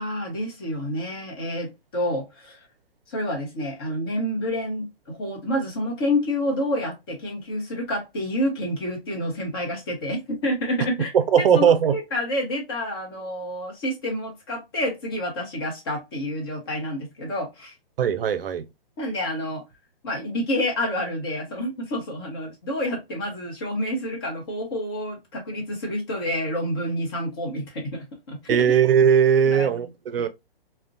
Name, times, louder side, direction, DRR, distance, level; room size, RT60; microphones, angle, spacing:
voice 1, 0.0-2.7 3.1-17.7 19.0-19.6 20.0-28.6 29.5-29.9 30.2-30.3, left 1 dB, 25° left, 0.7 m, -28 dB
voice 2, 11.1-12.0 18.0-18.6 28.5-30.3, right 8 dB, 70° right, 0.5 m, -19 dB
2.4 x 2.1 x 2.4 m
hypercardioid pair, 155°, 30 cm